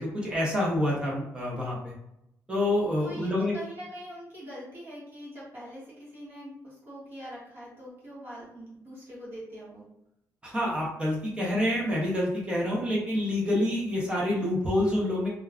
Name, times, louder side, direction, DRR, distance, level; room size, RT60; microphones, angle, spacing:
voice 1, 0.0-1.9 2.5-3.5 10.4-15.3, left 1 dB, 15° right, -4 dB, 0.6 m, -27 dB
voice 2, 3.0-9.8, equal, 35° right, -8 dB, 1.0 m, -43 dB
2.3 x 2.2 x 3.4 m, 0.81 s
wide cardioid pair, 175°, 7 cm